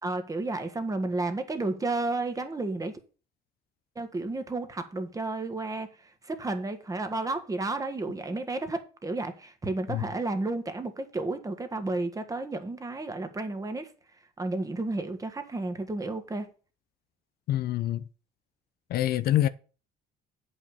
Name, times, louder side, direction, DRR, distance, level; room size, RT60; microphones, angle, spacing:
voice 1, 0.0-3.0 3.9-13.9 14.4-16.5, right 2 dB, 20° right, 1.7 m, -32 dB
voice 2, 17.5-18.0 18.9-19.5, left 13 dB, 65° left, 0.7 m, -25 dB
8.4 x 5.5 x 7.0 m
cardioid pair, 110°, 17 cm